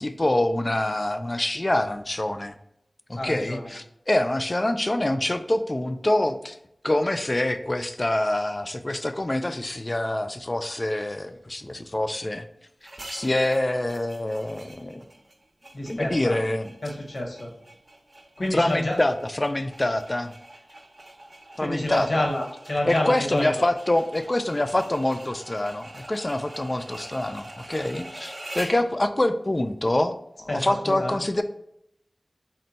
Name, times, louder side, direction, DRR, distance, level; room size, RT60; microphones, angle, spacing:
voice 1, 0.0-2.5 3.1-6.6 6.8-12.4 13.1-15.1 15.9-16.7 18.5-20.3 21.6-22.3 22.9-31.4, left 1 dB, 35° left, 9 dB, 0.3 m, -25 dB
voice 2, 3.2-3.7 15.7-16.4 16.8-17.5 18.4-19.0 21.6-23.6 30.5-31.2, left 1 dB, 80° left, 0 dB, 0.9 m, -28 dB
sound 1, 12.8-28.9, right 1 dB, 50° right, 0.6 m, -44 dB
4.2 x 2.2 x 4.0 m, 0.77 s
wide cardioid pair, 55°, 0 cm